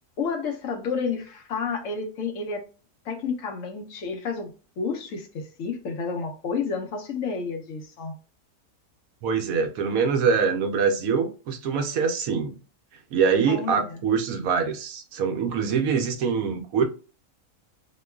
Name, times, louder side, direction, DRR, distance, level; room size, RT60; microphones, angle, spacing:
voice 1, 0.2-2.6 3.1-8.1 13.5-14.0, left 5 dB, 65° left, 0.9 m, -30 dB
voice 2, 9.2-12.6 13.1-16.8, right 6 dB, 70° right, 0.9 m, -24 dB
2.9 x 2.2 x 2.2 m
omnidirectional pair, 1.6 m